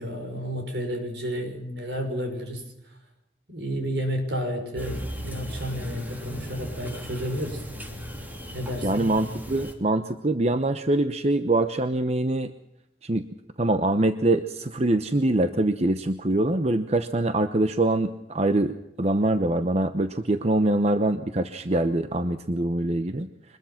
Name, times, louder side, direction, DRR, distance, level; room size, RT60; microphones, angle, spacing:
voice 1, 0.0-2.6 3.5-7.6 8.5-9.1, equal, 65° right, 4 dB, 6.2 m, -31 dB
sound 1, 4.8-9.7, equal, 10° right, 3.1 m, -36 dB
voice 2, 8.8-12.5 13.0-13.2 13.6-23.3, right 2 dB, 35° right, 9 dB, 0.9 m, -24 dB
24.5 x 21.0 x 5.9 m, 0.88 s
head